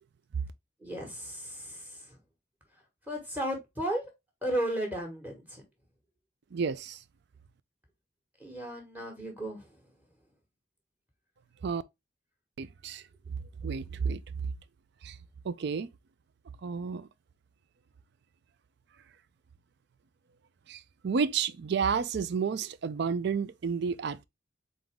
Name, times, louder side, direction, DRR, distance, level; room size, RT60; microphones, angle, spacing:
voice 1, 0.8-2.2 3.1-4.1 4.4-5.6 8.4-9.7, right 1 dB, 10° right, 1.4 m, -34 dB
voice 2, 6.5-7.0 11.6-11.8 12.6-13.0 13.6-14.2 15.0-15.2 15.4-15.9 16.6-17.1 20.7-24.3, right 6 dB, 55° right, 0.4 m, -31 dB
3.9 x 3.9 x 3.4 m
head